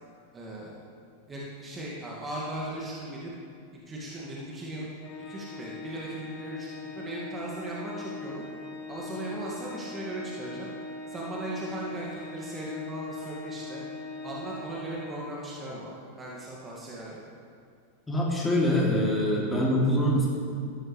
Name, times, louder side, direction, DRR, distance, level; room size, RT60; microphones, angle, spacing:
voice 1, 0.3-0.7 1.3-3.3 3.9-4.9 5.1-8.4 8.9-10.7 11.1-13.8 14.2-17.2, right 1 dB, 20° right, -5 dB, 2.1 m, -38 dB
Organ, 5.0-15.8, left 3 dB, 40° left, 1.6 m, -41 dB
voice 2, 18.1-20.3, equal, 10° left, -4 dB, 3.0 m, -24 dB
14.5 x 12.0 x 3.3 m, 2.3 s
figure-of-eight pair, 90°, 0 cm